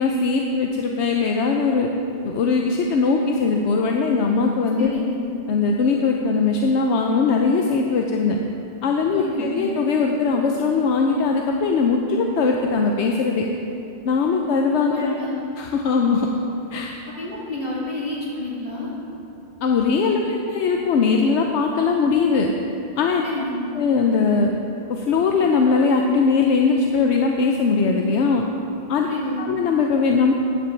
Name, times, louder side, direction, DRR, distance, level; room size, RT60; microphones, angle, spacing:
voice 1, 0.0-1.9 2.2-4.9 5.5-8.4 8.8-13.5 14.0-15.1 15.6-16.3 16.7-16.9 19.6-22.5 23.0-23.2 23.8-24.5 24.9-28.4 28.9-29.1 29.4-30.3, left 4 dB, 80° left, 2 dB, 1.0 m, -20 dB
voice 2, 4.8-5.2 9.1-9.6 14.9-15.4 17.2-18.9 23.2-23.6 29.0-29.5, left 1 dB, 55° left, -7 dB, 2.9 m, -29 dB
14.5 x 9.7 x 3.3 m, 2.8 s
omnidirectional pair, 1.2 m